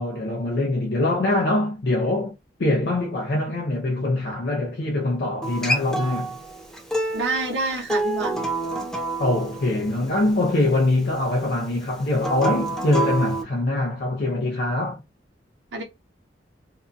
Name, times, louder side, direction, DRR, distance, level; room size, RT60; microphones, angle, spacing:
voice 1, 0.0-2.3 2.6-6.3 9.2-15.0, left 2 dB, 65° left, 0.5 m, -23 dB
Acoustic guitar, 5.4-10.6 12.2-13.4, right 2 dB, 5° left, 0.5 m, -28 dB
voice 2, 7.1-8.4 15.7-15.8, right 3 dB, 85° right, 0.8 m, -27 dB
2.6 x 2.3 x 2.5 m
head